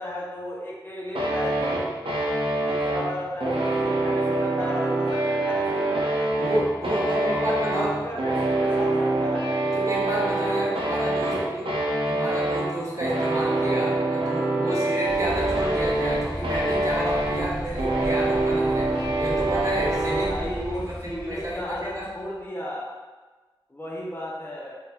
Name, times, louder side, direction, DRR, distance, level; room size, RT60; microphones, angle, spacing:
voice 1, 0.0-1.9 2.6-6.3 6.9-7.4 7.7-9.5 11.2-11.5 20.3-22.9 23.7-24.7, left 1 dB, 25° left, -5 dB, 0.7 m, -34 dB
sound 1, 1.1-20.3, right 2 dB, 75° right, 0.6 m, -25 dB
voice 2, 6.4-7.9 9.6-11.7 12.1-22.1, equal, 35° right, -5 dB, 0.8 m, -31 dB
sound 2, 15.0-22.2, equal, 5° right, 0.8 m, -36 dB
3.7 x 2.2 x 2.8 m, 1.3 s
wide cardioid pair, 60°, 9 cm